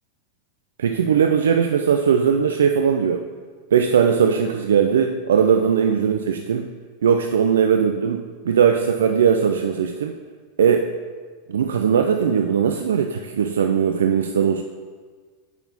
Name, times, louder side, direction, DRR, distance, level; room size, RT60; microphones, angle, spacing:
voice 1, 0.8-3.2 3.7-6.7 7.0-10.1 10.6-10.9 11.5-14.6, right 7 dB, 90° right, 5 dB, 0.4 m, -19 dB
9.1 x 4.1 x 5.4 m, 1.6 s
hypercardioid pair, 120°, 0 cm